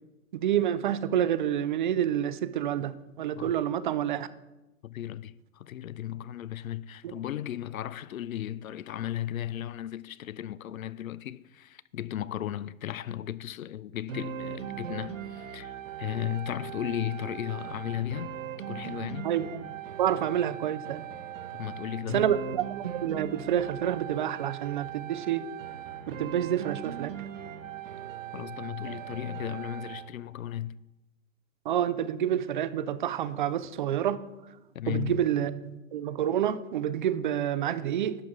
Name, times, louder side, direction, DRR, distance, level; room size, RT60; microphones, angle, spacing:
voice 1, 0.3-4.3 7.0-7.1 19.2-19.7 20.0-21.0 22.1-25.4 26.1-27.1 31.7-34.2 34.9-38.2, right 10 dB, 40° right, 0.4 m, -28 dB
voice 2, 4.8-18.3 18.7-19.3 21.5-22.3 28.3-30.8 34.7-35.2, left 12 dB, 80° left, 0.5 m, -35 dB
sound 1, 14.1-30.1, right 9 dB, 65° right, 1.1 m, -39 dB
11.5 x 5.8 x 4.8 m
hypercardioid pair, 125°, 41 cm